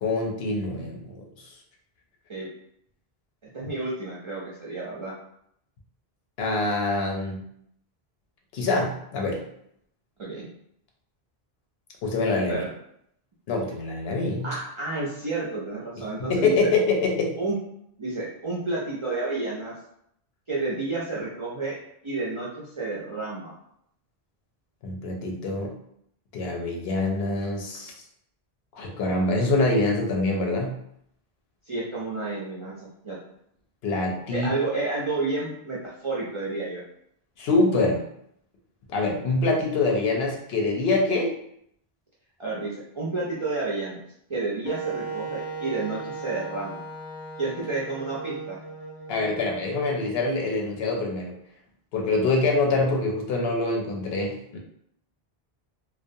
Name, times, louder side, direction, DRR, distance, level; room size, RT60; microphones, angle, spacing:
voice 1, 0.0-1.3 6.4-7.4 8.5-9.4 12.0-12.6 13.5-14.5 16.2-17.3 24.8-25.7 26.3-27.9 28.7-30.8 33.8-34.5 37.4-38.0 38.9-41.3 49.1-51.3 51.9-54.6, left 2 dB, 75° left, 1 dB, 0.8 m, -25 dB
voice 2, 3.5-5.1 10.2-10.5 12.5-12.7 14.4-16.7 17.3-17.6 18.0-19.7 20.5-21.8 22.0-23.5 31.6-33.2 34.3-36.8 42.4-44.0 44.3-46.8 47.4-48.6, right 3 dB, 45° right, -6 dB, 0.4 m, -30 dB
Wind instrument woodwind instrument, 44.6-50.5, right 3 dB, 35° left, 0.5 m, -37 dB
2.3 x 2.1 x 2.6 m, 0.72 s
omnidirectional pair, 1.0 m